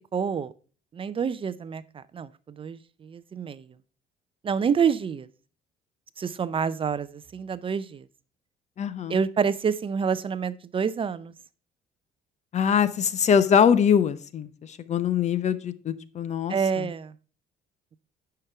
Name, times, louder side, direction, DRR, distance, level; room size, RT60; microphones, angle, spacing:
voice 1, 0.1-0.5 0.9-3.7 4.4-5.3 6.2-8.0 9.1-11.3 16.5-17.1, right 6 dB, 30° right, 0.5 m, -28 dB
voice 2, 8.8-9.2 12.5-16.9, left 7 dB, 45° left, 0.8 m, -23 dB
9.9 x 5.8 x 4.6 m
cardioid pair, 110°, 17 cm